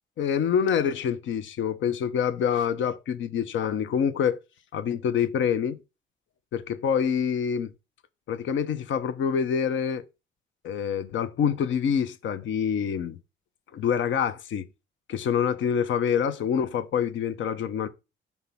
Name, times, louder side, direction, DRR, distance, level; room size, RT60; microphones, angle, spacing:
voice 1, 0.2-4.4 4.7-5.8 6.5-7.7 8.3-10.0 10.6-13.2 13.7-14.6 15.1-17.9, left 7 dB, 70° left, 1.0 m, -26 dB
5.7 x 3.5 x 5.5 m
cardioid pair, 90°, 20 cm